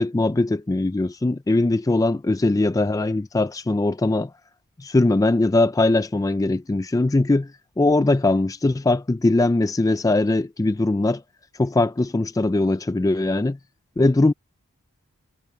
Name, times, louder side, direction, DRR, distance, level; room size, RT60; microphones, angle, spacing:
voice 1, 0.0-4.3 4.8-7.5 7.8-11.2 11.6-13.6 14.0-14.3, left 2 dB, 15° left, 0.3 m, -21 dB
head